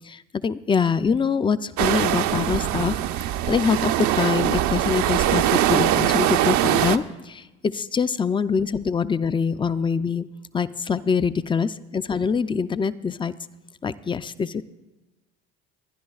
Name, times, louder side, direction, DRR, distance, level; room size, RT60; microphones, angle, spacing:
voice 1, 0.4-3.0 3.5-7.0 7.3-10.3 10.5-13.3 13.8-14.6, left 6 dB, 15° left, 14 dB, 0.4 m, -24 dB
sound 1, 1.8-7.0, right 12 dB, 60° right, 0.6 m, -22 dB
23.5 x 10.5 x 2.4 m, 1.1 s
hypercardioid pair, 75°, 34 cm